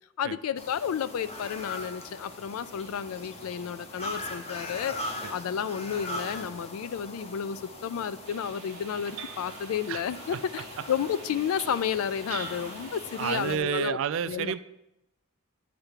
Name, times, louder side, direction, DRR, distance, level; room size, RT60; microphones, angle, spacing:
voice 1, 0.2-14.0 14.3-14.5, left 8 dB, 80° left, 16 dB, 0.3 m, -32 dB
sound 1, 0.6-13.6, left 1 dB, 30° left, 0.7 m, -41 dB
sound 2, 8.2-13.4, right 6 dB, 85° right, 0.7 m, -45 dB
voice 2, 13.2-14.6, right 8 dB, 60° right, 14 dB, 0.3 m, -29 dB
9.0 x 3.4 x 5.6 m, 0.88 s
head